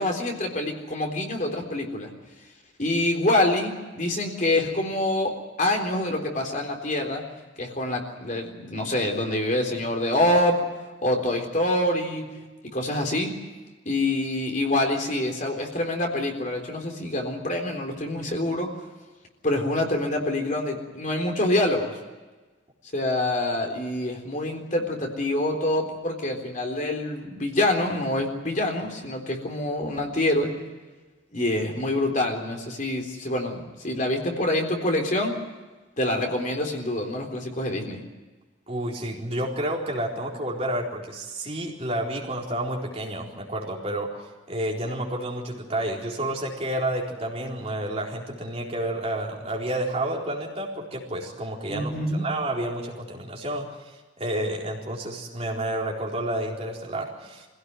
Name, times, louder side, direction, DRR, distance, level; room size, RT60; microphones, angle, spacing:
voice 1, 0.0-2.1 2.8-7.2 7.6-10.6 11.0-12.2 12.7-13.3 13.9-18.7 19.4-21.9 22.9-30.5 31.3-35.3 36.0-38.0 51.7-52.2, left 1 dB, 40° left, 2 dB, 3.8 m, -26 dB
voice 2, 38.7-44.1 44.5-53.7 54.2-57.5, right 1 dB, 30° right, -1 dB, 4.2 m, -30 dB
24.5 x 17.0 x 9.5 m, 1.3 s
head